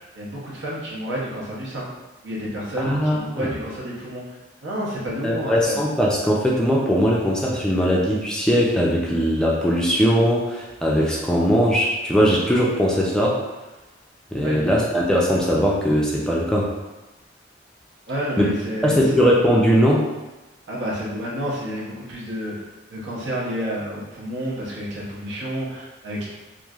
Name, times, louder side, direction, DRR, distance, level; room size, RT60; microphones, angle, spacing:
voice 1, 0.1-1.9 2.2-4.3 4.6-5.8 14.4-14.6 18.1-19.0 20.7-22.5 22.9-26.3, equal, 85° right, -6 dB, 0.9 m, -30 dB
voice 2, 2.8-3.5 5.2-13.4 14.3-16.7 18.4-18.5 18.8-20.0, equal, 5° left, -4 dB, 0.3 m, -20 dB
3.1 x 2.5 x 2.3 m, 1.1 s
head